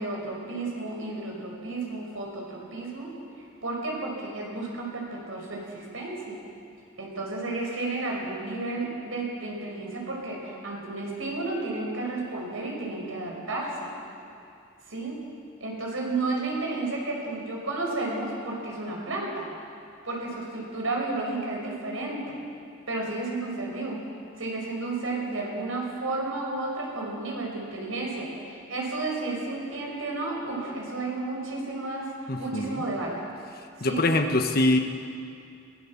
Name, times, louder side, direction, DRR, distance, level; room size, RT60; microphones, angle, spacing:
voice 1, 0.0-3.1 3.6-6.4 7.0-13.9 14.9-15.2 15.6-19.4 20.0-22.4 22.9-24.0 24.4-32.1 32.4-33.2 33.8-34.1, right 2 dB, 85° right, -2 dB, 5.5 m, -32 dB
voice 2, 32.3-32.8 33.8-34.8, left 2 dB, 45° left, 6 dB, 1.3 m, -24 dB
22.5 x 16.0 x 7.3 m, 2.5 s
head